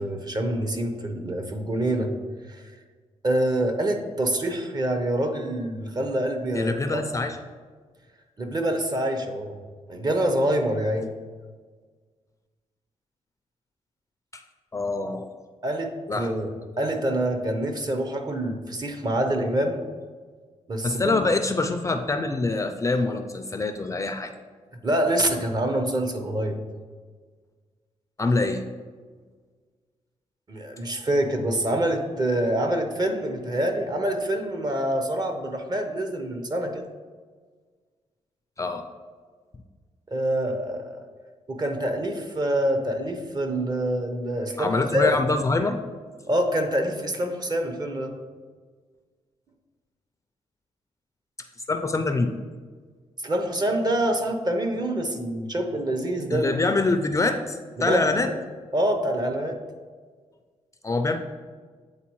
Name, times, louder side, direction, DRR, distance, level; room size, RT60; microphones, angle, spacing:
voice 1, 0.0-2.1 2.5-2.6 3.2-7.0 8.4-9.6 9.9-11.1 15.6-19.8 20.7-21.2 24.8-26.6 30.5-36.9 40.1-41.0 41.5-45.1 46.3-48.1 53.2-56.5 57.8-58.4 58.7-59.6, right 1 dB, 35° right, 6 dB, 0.8 m, -26 dB
voice 2, 6.5-7.4 14.3-14.4 14.7-15.3 16.1-16.3 20.8-24.3 28.2-28.6 38.6-38.8 44.6-45.8 51.7-52.3 56.3-58.3 60.8-61.2, left 3 dB, 25° left, 7 dB, 0.4 m, -25 dB
8.3 x 3.9 x 3.0 m, 1.5 s
cardioid pair, 75°, 12 cm